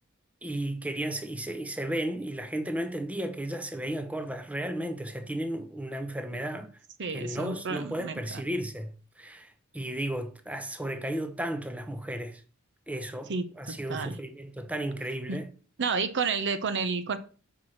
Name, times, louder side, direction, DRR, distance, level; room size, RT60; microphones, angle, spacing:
voice 1, 0.4-6.7 7.1-12.4 12.9-15.5, right 1 dB, 5° right, 0.7 m, -34 dB
voice 2, 7.0-8.4 13.3-14.2 15.3-15.4 15.8-17.2, right 5 dB, 55° right, 0.7 m, -31 dB
5.6 x 4.7 x 6.3 m
head